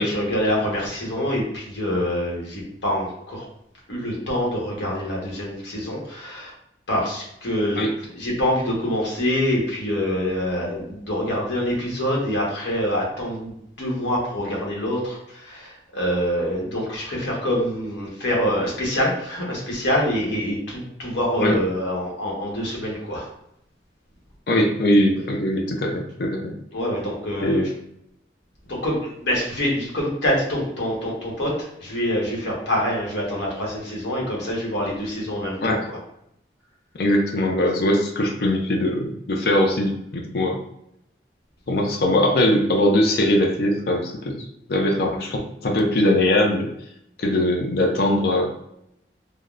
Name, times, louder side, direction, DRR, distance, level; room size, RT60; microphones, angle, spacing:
voice 1, 0.0-3.4 3.9-6.5 6.9-23.3 26.7-27.7 28.7-36.0, equal, 85° left, -3 dB, 1.0 m, -25 dB
voice 2, 24.5-26.5 27.4-27.7 35.6-35.8 37.0-40.6 41.7-46.7 47.2-48.5, left 1 dB, 55° left, 2 dB, 0.4 m, -21 dB
3.4 x 2.1 x 2.4 m, 0.77 s
head